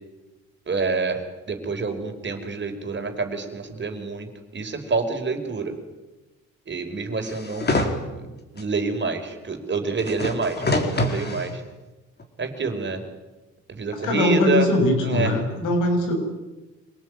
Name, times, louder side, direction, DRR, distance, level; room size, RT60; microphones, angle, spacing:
voice 1, 0.7-4.3 4.5-5.7 6.7-8.2 8.5-11.6 12.4-13.0 13.7-14.7 15.0-15.3, right 4 dB, 35° right, 5 dB, 5.0 m, -27 dB
sound 1, 7.2-7.9 8.6-8.7 10.0-11.5 12.2-12.3, left 2 dB, 35° left, 4.4 m, -25 dB
voice 2, 13.9-16.1, left 2 dB, 90° left, 4 dB, 7.1 m, -21 dB
26.5 x 18.5 x 9.7 m, 1.1 s
cardioid pair, 90°, 30 cm